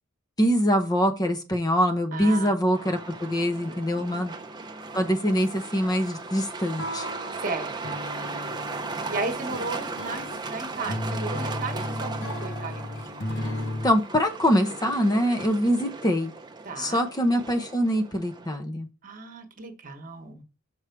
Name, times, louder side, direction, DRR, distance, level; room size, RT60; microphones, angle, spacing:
voice 1, 0.4-4.3 4.9-7.1 13.8-16.3 16.8-18.9, equal, 20° left, 0.7 m, -24 dB
voice 2, 2.1-2.5 3.6-4.2 7.4-8.0 9.1-13.5 16.6-17.0 19.0-20.4, right 3 dB, 40° right, 1.2 m, -35 dB
Truck, 2.7-18.6, right 3 dB, 20° right, 0.6 m, -37 dB
Guitar, 6.8-9.2, right 1 dB, 90° left, 1.0 m, -41 dB
sound 1, 7.8-14.0, left 1 dB, 55° left, 0.9 m, -34 dB
6.1 x 4.8 x 4.5 m
head